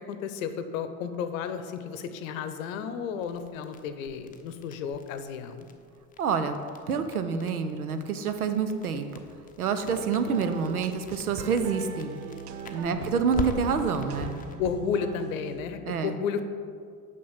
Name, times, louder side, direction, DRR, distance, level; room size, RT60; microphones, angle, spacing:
voice 1, 0.1-5.7 12.8-13.2 14.6-16.4, left 7 dB, 65° left, 9 dB, 0.8 m, -33 dB
sound 1, 3.2-14.5, left 5 dB, 20° left, 0.7 m, -43 dB
voice 2, 6.2-6.6 6.9-9.2 9.6-12.1 12.7-14.3 15.9-16.1, right 6 dB, 85° right, 8 dB, 0.7 m, -27 dB
sound 2, 9.8-15.6, right 7 dB, 40° right, 0.5 m, -40 dB
6.2 x 5.8 x 5.6 m, 2.2 s
figure-of-eight pair, 70°, 43 cm